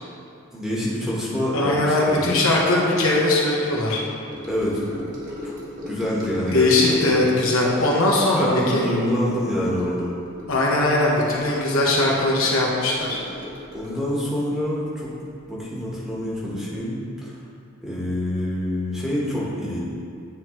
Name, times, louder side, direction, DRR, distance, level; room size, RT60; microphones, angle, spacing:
voice 1, 0.5-2.3 4.5-5.1 5.4-5.5 5.9-7.2 8.3-10.1 13.7-15.1 15.5-17.3 17.8-19.8, equal, 5° right, -8 dB, 1.2 m, -26 dB
voice 2, 1.5-4.0 6.5-8.8 10.5-13.2, left 2 dB, 70° left, -4 dB, 1.1 m, -20 dB
Gurgling / Sink (filling or washing) / Trickle dribble, 4.3-15.9 16.2-16.5 16.8-16.9, left 1 dB, 35° right, 1.3 m, -38 dB
9.7 x 4.6 x 3.1 m, 2.4 s
head